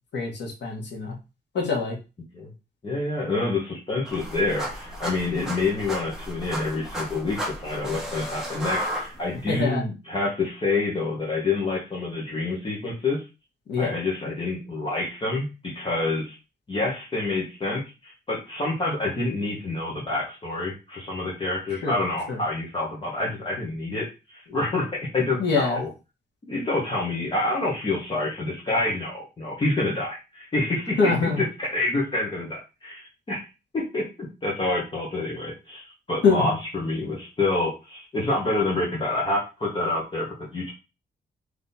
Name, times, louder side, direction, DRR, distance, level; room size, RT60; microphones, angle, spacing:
voice 1, 0.1-1.1 1.5-2.0 9.5-9.8 13.7-13.9 21.8-22.0 22.3-22.4 25.4-25.8 31.0-31.4 36.2-36.4, left 4 dB, 75° left, 0 dB, 1.6 m, -24 dB
voice 2, 2.8-13.2 13.8-16.4 16.7-24.8 25.1-25.9 26.5-33.4 33.7-34.0 34.4-35.8 36.1-40.7, left 2 dB, 30° left, -4 dB, 1.3 m, -27 dB
sound 1, 4.1-9.6, equal, 5° right, 1.0 m, -33 dB
3.6 x 3.2 x 4.2 m, 0.28 s
wide cardioid pair, 175°, 18 cm